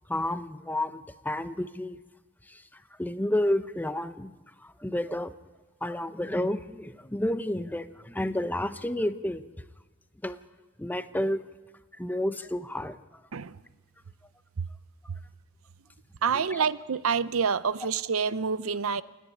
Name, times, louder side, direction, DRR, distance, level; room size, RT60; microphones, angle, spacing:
voice 1, 0.1-2.0 2.5-2.6 3.0-4.3 4.6-5.3 5.8-9.4 10.2-10.4 10.8-11.4 12.0-13.0, left 1 dB, 10° left, 11 dB, 0.8 m, -30 dB
voice 2, 16.2-19.0, right 6 dB, 70° right, 16 dB, 0.6 m, -27 dB
28.0 x 10.0 x 9.6 m, 1.3 s
head